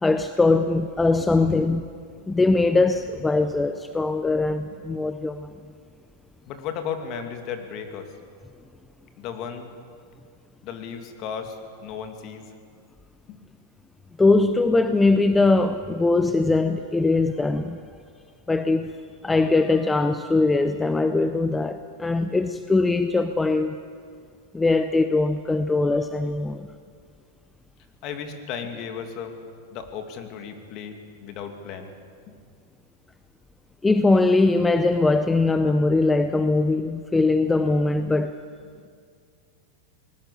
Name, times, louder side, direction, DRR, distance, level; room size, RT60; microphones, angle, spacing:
voice 1, 0.0-1.9 2.3-5.5 14.2-17.8 18.5-18.9 19.2-23.8 24.5-26.7 33.8-38.3, left 3 dB, 10° left, 0.6 m, -21 dB
voice 2, 6.5-8.1 9.2-9.7 10.6-12.5 13.3-13.4 28.0-29.3 29.7-31.9 32.3-32.4, left 7 dB, 40° left, 2.4 m, -35 dB
24.0 x 20.0 x 6.9 m
supercardioid pair, 155°, 0 cm